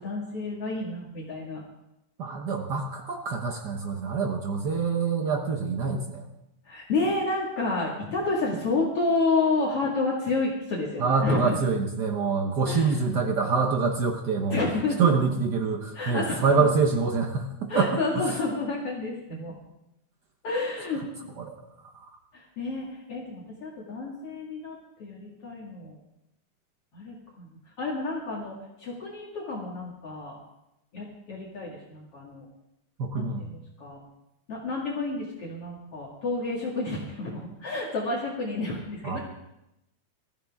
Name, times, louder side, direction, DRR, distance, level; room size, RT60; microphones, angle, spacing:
voice 1, 0.0-1.6 6.7-11.6 12.7-13.0 14.5-15.0 15.9-16.6 17.7-19.6 20.4-21.3 22.3-25.9 26.9-27.5 27.8-30.4 30.9-32.4 33.1-34.0 34.5-39.2, left 3 dB, 50° left, -4 dB, 2.8 m, -30 dB
voice 2, 2.2-6.2 11.0-14.6 15.0-18.2 21.4-21.5 33.0-33.4 39.0-39.2, right 4 dB, 85° right, 3 dB, 0.9 m, -26 dB
22.5 x 14.5 x 3.6 m, 0.87 s
omnidirectional pair, 3.5 m